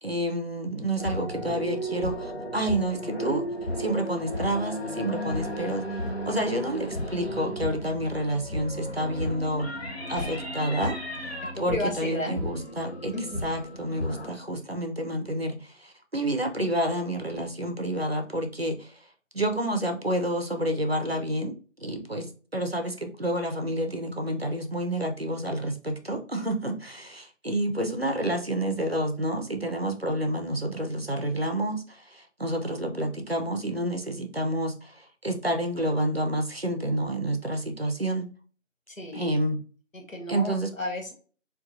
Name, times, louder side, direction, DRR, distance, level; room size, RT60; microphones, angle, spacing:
voice 1, 0.0-3.5 3.8-9.7 10.1-11.0 11.6-13.1 13.4-19.0 19.3-38.3 39.1-39.6 40.3-40.7, right 1 dB, 55° right, 5 dB, 0.5 m, -29 dB
sound 1, 1.0-14.3, equal, 55° left, 0.6 m, -34 dB
voice 2, 10.1-10.4 10.8-10.9 11.5-12.3 13.1-13.4 38.9-39.3 39.9-41.1, left 1 dB, 90° left, 2 dB, 1.2 m, -34 dB
3.8 x 2.2 x 2.5 m, 0.41 s
figure-of-eight pair, 180°, 38 cm